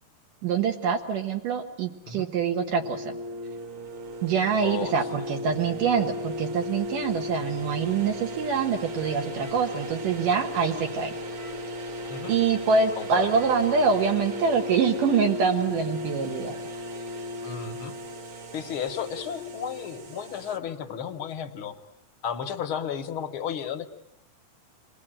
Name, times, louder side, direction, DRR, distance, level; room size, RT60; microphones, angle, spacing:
voice 1, 0.4-3.1 4.2-11.1 12.3-16.6, right 6 dB, 75° right, 3 dB, 3.0 m, -25 dB
sound 1, 2.7-20.6, left 1 dB, 45° right, 1.9 m, -35 dB
voice 2, 4.6-4.9 12.1-12.3 13.0-13.3 17.4-18.0 18.5-21.7 22.2-23.9, left 8 dB, 60° left, 6 dB, 1.5 m, -33 dB
sound 2, 9.4-10.0 11.3-11.9 13.3-13.9, left 1 dB, 90° right, 8.7 m, -49 dB
28.0 x 21.0 x 8.9 m, 0.85 s
omnidirectional pair, 3.9 m